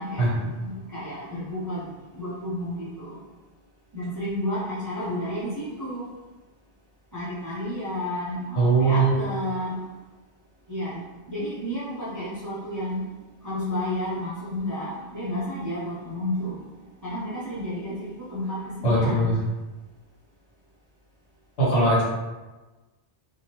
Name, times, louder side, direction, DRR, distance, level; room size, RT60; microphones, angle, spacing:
voice 1, 0.0-1.8 2.1-3.2 3.9-6.1 7.1-9.8 10.7-11.0 11.3-13.0 13.4-16.6 17.0-19.4, left 1 dB, 25° right, -9 dB, 0.4 m, -31 dB
voice 2, 8.5-9.1 18.8-19.3 21.6-22.0, right 2 dB, 80° left, -8 dB, 1.5 m, -20 dB
2.8 x 2.2 x 2.9 m, 1.2 s
omnidirectional pair, 1.1 m